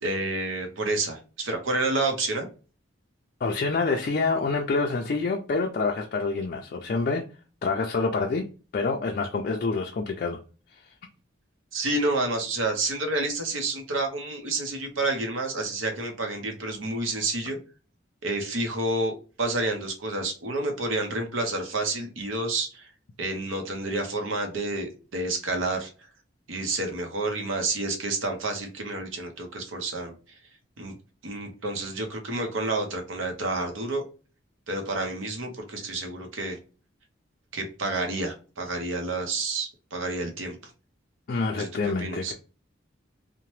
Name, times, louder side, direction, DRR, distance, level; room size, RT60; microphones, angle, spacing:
voice 1, 0.0-2.5 11.7-17.6 18.2-19.1 19.4-22.9 23.2-25.9 26.5-30.4 30.8-30.9 31.2-34.0 34.7-36.6 37.5-40.6 41.5-41.7 42.0-42.3, right 2 dB, 80° right, 4 dB, 0.7 m, -29 dB
voice 2, 3.4-7.2 7.6-8.5 8.7-10.4 10.7-10.8 41.3-42.3, left 4 dB, 45° left, 1 dB, 0.3 m, -27 dB
2.8 x 2.1 x 3.1 m, 0.35 s
head